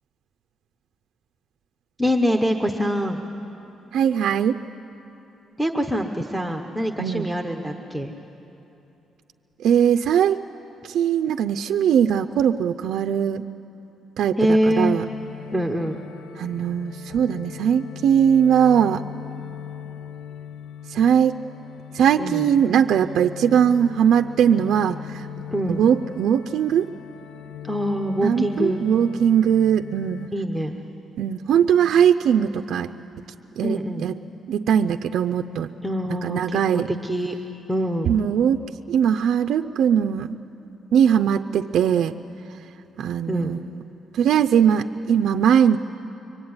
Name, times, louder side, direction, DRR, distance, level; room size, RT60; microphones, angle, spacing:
voice 1, 2.0-3.2 5.6-8.1 14.4-14.9 15.5-16.0 22.2-22.4 25.5-25.8 27.6-28.8 30.3-30.7 33.6-34.1 35.8-38.1 43.3-43.5, equal, ahead, 3 dB, 1.0 m, -24 dB
voice 2, 3.9-4.6 7.0-7.3 9.6-10.4 10.8-13.4 14.2-14.4 14.8-15.0 16.4-19.0 20.9-21.4 21.9-25.3 25.7-26.9 28.2-30.3 31.2-32.9 33.6-34.2 34.5-35.7 36.2-36.9 38.0-38.6 38.9-40.3 40.9-42.2 43.0-43.8 44.1-45.8, right 8 dB, 65° right, 6 dB, 0.5 m, -20 dB
sound 1, 14.7-30.3, left 9 dB, 70° left, 0.6 m, -40 dB
24.5 x 23.5 x 9.6 m, 2.9 s
cardioid pair, 160°, 0 cm